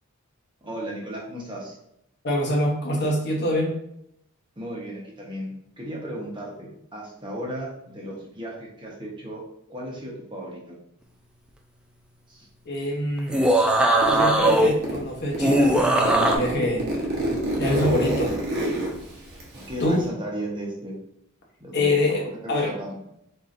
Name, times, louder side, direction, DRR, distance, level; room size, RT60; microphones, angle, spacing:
voice 1, 0.6-1.8 4.6-9.4 9.7-10.8 12.3-12.5 19.7-20.9 21.6-23.0, right 1 dB, 25° right, -3 dB, 1.0 m, -35 dB
voice 2, 2.2-3.8 12.7-13.4 14.1-16.9 17.6-18.4 19.8-20.0 21.7-22.7, left 1 dB, 55° left, -1 dB, 1.0 m, -25 dB
sound 1, 13.2-14.8 15.4-16.4, right 1 dB, 5° right, 0.4 m, -19 dB
Zipper (clothing), 14.0-15.0 15.3-20.0, right 1 dB, 50° right, 1.0 m, -28 dB
4.2 x 3.7 x 2.6 m, 0.76 s
head